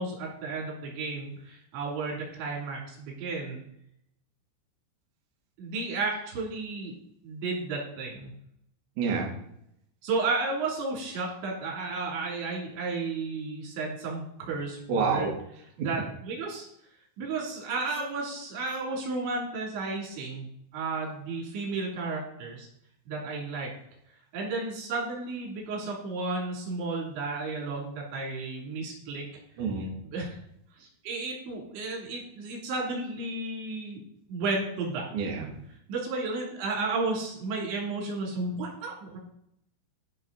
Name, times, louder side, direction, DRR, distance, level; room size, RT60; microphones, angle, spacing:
voice 1, 0.0-3.6 5.6-6.9 7.2-8.3 10.0-15.3 15.8-16.7 17.2-20.5 20.7-22.7 23.1-23.7 24.3-29.3 30.0-30.4 30.8-34.0 34.3-35.1 35.9-39.2, right 3 dB, 90° right, -2 dB, 5.4 m, -33 dB
voice 2, 9.0-9.3 14.9-15.3 15.8-15.9 29.6-29.9 35.1-35.5, right 5 dB, 55° right, 0 dB, 2.7 m, -28 dB
15.0 x 5.8 x 4.1 m, 0.72 s
omnidirectional pair, 5.1 m